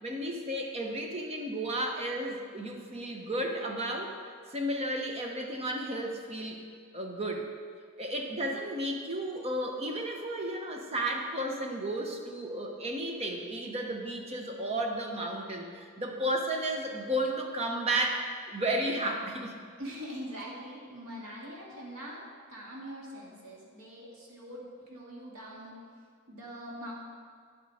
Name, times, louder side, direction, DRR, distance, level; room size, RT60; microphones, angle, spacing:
voice 1, 0.0-6.6 6.9-7.5 8.0-19.5, right 1 dB, 30° right, 2 dB, 0.9 m, -33 dB
voice 2, 19.8-22.2 22.5-25.8 26.3-26.9, equal, 70° right, -4 dB, 2.2 m, -43 dB
9.2 x 7.4 x 4.2 m, 2.2 s
head